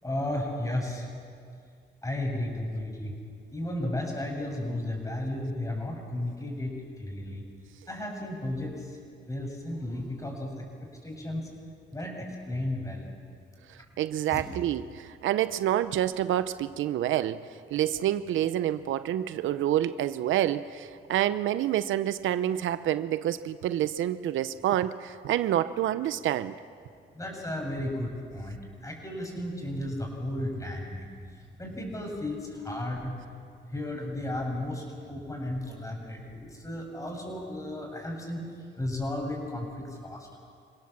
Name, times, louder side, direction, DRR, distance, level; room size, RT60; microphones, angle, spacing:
voice 1, 0.0-1.1 2.0-3.1 3.5-6.7 7.0-7.4 7.9-8.7 9.3-10.6 11.0-11.5 11.9-13.1 14.3-14.4 27.1-31.1 31.6-33.1 33.7-38.4 38.8-40.4, left 1 dB, 15° left, 1 dB, 6.8 m, -34 dB
voice 2, 14.0-17.4 17.7-26.5, right 12 dB, 80° right, 13 dB, 0.7 m, -28 dB
27.5 x 17.0 x 7.3 m, 2.2 s
cardioid pair, 90°, 20 cm